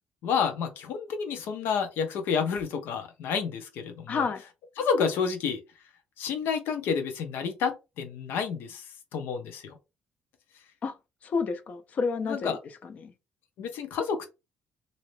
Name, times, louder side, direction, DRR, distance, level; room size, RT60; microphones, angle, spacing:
voice 1, 0.2-4.3 4.8-5.6 6.2-8.9 9.1-9.8 12.3-12.6 13.6-14.2, left 6 dB, 85° left, 0.9 m, -29 dB
voice 2, 4.1-4.4 10.8-11.0 11.2-12.6 12.8-13.1, left 5 dB, 45° left, 0.5 m, -30 dB
3.2 x 2.7 x 3.2 m
cardioid pair, 155°, 4 cm